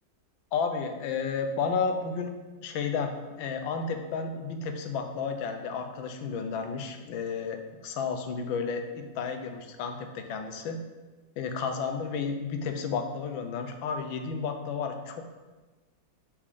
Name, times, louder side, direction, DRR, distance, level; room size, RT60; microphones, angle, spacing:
voice 1, 0.5-2.4 2.6-10.8 11.4-15.2, left 5 dB, 85° left, 5 dB, 1.5 m, -32 dB
5.3 x 4.9 x 5.2 m, 1.3 s
omnidirectional pair, 2.1 m